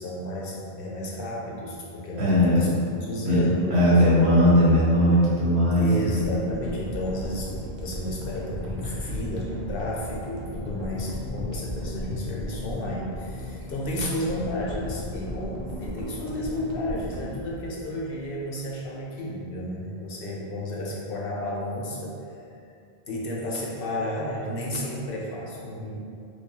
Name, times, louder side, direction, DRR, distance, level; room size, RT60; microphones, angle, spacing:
voice 1, 0.0-2.7 3.0-3.8 4.4-4.5 5.8-22.5 23.1-25.9, left 1 dB, 65° left, -3 dB, 0.7 m, -32 dB
voice 2, 2.2-2.7 3.3-3.4 3.7-6.2, equal, 90° right, -8 dB, 1.3 m, -19 dB
sound 1, 6.2-18.4 18.9-19.0, left 1 dB, 70° right, 0.9 m, -35 dB
4.5 x 2.2 x 2.7 m, 2.5 s
omnidirectional pair, 1.1 m